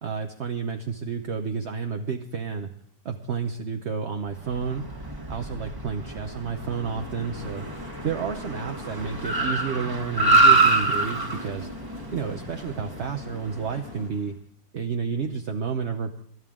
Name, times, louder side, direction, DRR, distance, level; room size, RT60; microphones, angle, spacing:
voice 1, 0.0-2.7 3.0-4.9 5.3-7.7 8.0-11.7 12.1-14.4 14.7-16.2, right 6 dB, 50° right, 4 dB, 0.9 m, -30 dB
Car, 4.4-13.9, right 3 dB, 10° right, 1.4 m, -26 dB
sound 1, 6.6-14.1, left 5 dB, 50° left, 2.1 m, -42 dB
25.0 x 12.5 x 3.7 m, 0.64 s
omnidirectional pair, 2.0 m